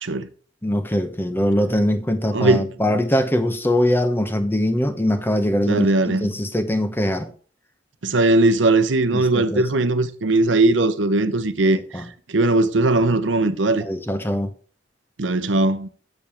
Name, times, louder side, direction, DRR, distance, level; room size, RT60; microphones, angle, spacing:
voice 1, 0.6-7.3 9.1-9.6 11.9-12.0 13.8-14.5, left 1 dB, 10° left, 0.9 m, -22 dB
voice 2, 2.3-2.7 5.7-6.3 8.0-12.0 12.3-13.9 15.2-15.9, right 2 dB, 80° right, 0.8 m, -19 dB
7.2 x 6.9 x 4.4 m
head